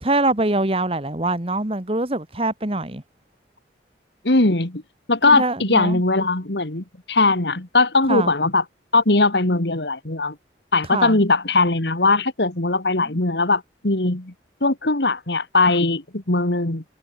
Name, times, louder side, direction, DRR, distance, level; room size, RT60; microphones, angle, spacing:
voice 1, 0.0-3.0 5.2-6.0 8.1-8.3 10.9-11.2 13.0-13.1, right 2 dB, 30° right, 1.6 m, -23 dB
voice 2, 4.2-4.8 5.1-8.6 8.9-10.4 10.7-14.3 14.6-16.8, left 3 dB, 70° left, 2.2 m, -20 dB
head